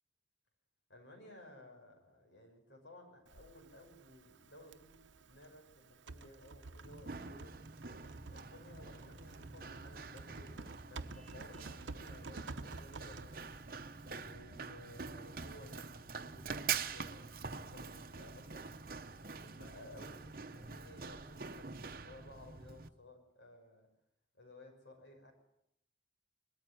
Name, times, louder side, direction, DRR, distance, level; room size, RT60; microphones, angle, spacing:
voice 1, 0.9-5.0 5.3-7.6 8.2-13.5 14.0-18.8 19.2-23.9 24.4-25.3, left 1 dB, 80° left, 3 dB, 6.1 m, -57 dB
Typing, 3.3-14.3, right 3 dB, 90° right, 0.9 m, -51 dB
Run, 6.8-22.9, right 6 dB, 50° right, 0.9 m, -45 dB
Vehicle horn car horn honking, 11.1-11.9, right 5 dB, 5° left, 2.5 m, -66 dB
22.0 x 14.0 x 9.2 m, 0.82 s
head